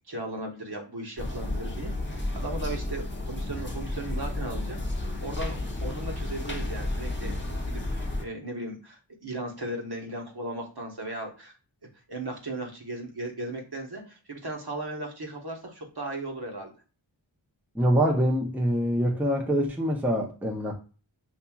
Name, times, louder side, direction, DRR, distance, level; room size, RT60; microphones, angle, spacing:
voice 1, 0.1-7.4 7.7-11.5 12.1-16.7, right 2 dB, 55° right, 1.2 m, -37 dB
sound 1, 1.2-8.2, left 1 dB, 25° left, 0.9 m, -32 dB
voice 2, 17.7-20.7, equal, 5° right, 0.7 m, -25 dB
5.7 x 2.7 x 2.3 m
wide cardioid pair, 55°, 47 cm